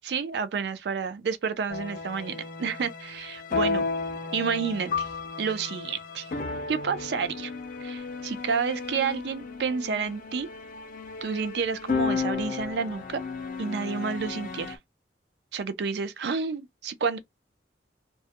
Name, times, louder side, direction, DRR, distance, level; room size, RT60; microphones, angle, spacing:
voice 1, 0.0-3.8 4.3-5.1 5.4-6.3 6.7-7.5 7.8-10.5 11.2-13.2 13.6-14.8 15.5-17.2, right 5 dB, 70° right, 0.4 m, -30 dB
sound 1, 1.7-14.8, left 4 dB, 50° left, 0.4 m, -33 dB
2.2 x 2.1 x 2.8 m
head